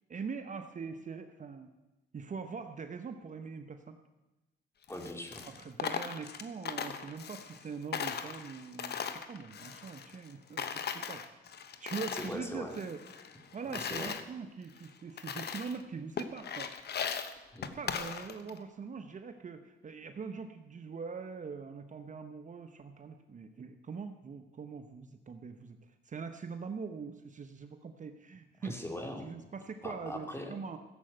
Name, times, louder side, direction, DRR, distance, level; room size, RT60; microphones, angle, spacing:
voice 1, 0.1-1.7 2.1-4.0 5.5-11.4 11.8-16.7 17.8-25.8 26.0-28.8 29.2-30.8, right 5 dB, 40° right, 8 dB, 1.0 m, -42 dB
Coin (dropping), 4.8-7.7 7.9-10.3 10.6-12.4 12.7-14.2 14.8-14.9 15.2-15.8 16.2-18.6, left 7 dB, 55° left, 1.1 m, -39 dB
voice 2, 4.9-5.5 12.1-12.8 13.6-14.1 17.5-17.7 28.6-29.3 29.8-30.6, left 1 dB, 15° left, 3 dB, 2.8 m, -41 dB
15.5 x 7.8 x 7.9 m, 1.1 s
cardioid pair, 90°, 20 cm